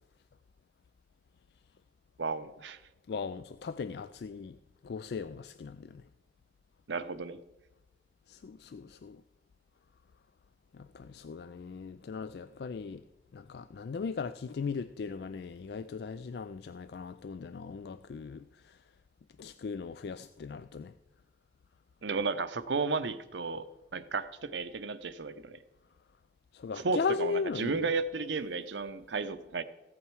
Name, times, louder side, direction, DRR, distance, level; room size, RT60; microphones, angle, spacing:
voice 1, 2.2-2.8 6.9-7.4 22.0-23.6 23.9-25.6 26.7-29.6, right 4 dB, 85° right, 0.7 m, -33 dB
voice 2, 3.1-4.6 4.8-6.0 8.3-9.2 10.7-13.0 13.3-18.7 19.4-20.9 26.5-27.8, left 5 dB, 65° left, 0.3 m, -38 dB
15.5 x 8.6 x 4.7 m
head